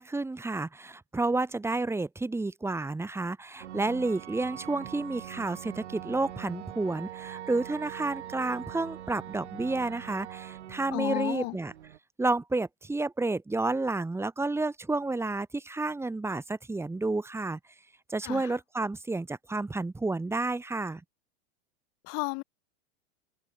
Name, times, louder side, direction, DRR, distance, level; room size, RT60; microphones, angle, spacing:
voice 1, 0.0-11.7 12.2-17.6 18.1-21.0, right 2 dB, 5° right, 3.4 m, -30 dB
sound 1, 3.6-12.0, right 11 dB, 85° right, 7.4 m, -43 dB
voice 2, 10.9-11.6 18.2-18.6 22.0-22.4, left 28 dB, 50° left, 3.1 m, -33 dB
supercardioid pair, 130°, 33 cm